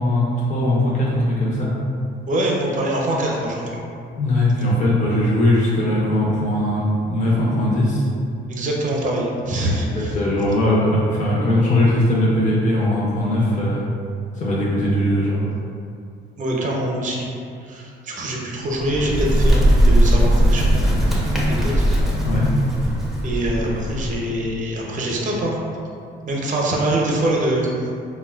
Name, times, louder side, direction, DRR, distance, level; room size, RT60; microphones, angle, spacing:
voice 1, 0.0-1.7 4.2-8.0 9.6-13.8 14.4-15.5 22.2-22.5, left 1 dB, 40° left, -6 dB, 0.6 m, -20 dB
voice 2, 2.3-3.8 8.5-10.2 16.4-17.3 17.6-21.1 21.3-21.8 23.2-25.6 26.3-27.9, right 1 dB, 40° right, -2 dB, 0.6 m, -24 dB
Bird, 18.7-24.4, equal, ahead, 0.6 m, -19 dB
3.5 x 2.2 x 2.3 m, 2.4 s
cardioid pair, 90°, 20 cm